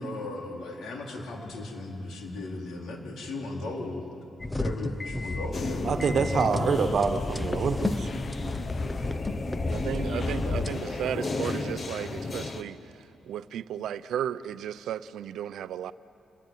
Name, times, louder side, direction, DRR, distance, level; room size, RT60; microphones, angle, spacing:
voice 1, 0.0-4.1 4.6-6.5, left 2 dB, 70° left, 0 dB, 4.3 m, -36 dB
sound 1, 4.4-10.7, left 2 dB, 15° left, 0.7 m, -32 dB
sound 2, 5.5-12.6, left 3 dB, 35° left, 1.3 m, -34 dB
voice 2, 5.8-8.1, right 5 dB, 50° right, 8 dB, 1.3 m, -26 dB
voice 3, 9.7-12.8 13.3-15.9, right 10 dB, 85° right, 15 dB, 0.6 m, -34 dB
28.0 x 21.5 x 9.2 m, 2.8 s
cardioid pair, 145°, 0 cm